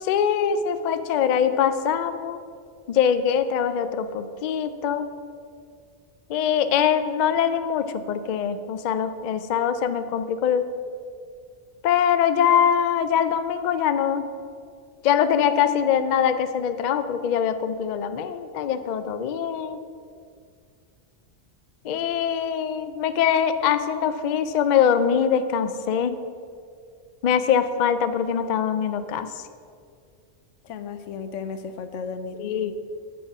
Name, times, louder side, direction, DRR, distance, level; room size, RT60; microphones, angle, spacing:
voice 1, 0.0-2.4 2.9-5.1 6.3-10.7 11.8-14.3 15.0-19.9 21.8-26.2 27.2-29.4 32.4-32.7, left 8 dB, 65° left, 11 dB, 0.4 m, -23 dB
voice 2, 30.6-32.4, left 5 dB, 85° left, 9 dB, 1.0 m, -34 dB
8.7 x 5.1 x 5.8 m, 2.2 s
omnidirectional pair, 1.2 m